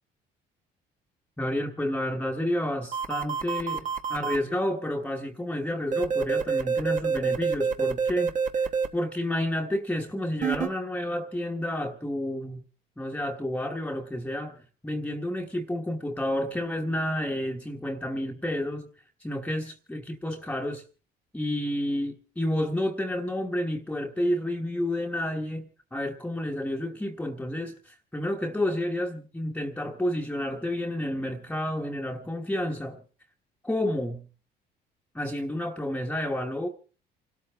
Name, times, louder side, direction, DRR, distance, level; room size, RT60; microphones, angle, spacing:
voice 1, 1.4-12.6 13.0-18.9 19.2-20.8 21.3-33.0 33.6-34.3 35.1-36.7, left 1 dB, 10° left, 1.3 m, -30 dB
sound 1, 2.9-4.4 5.9-8.9 10.4-10.7, right 6 dB, 50° right, 1.3 m, -27 dB
29.0 x 13.0 x 3.4 m
cardioid pair, 110°, 17 cm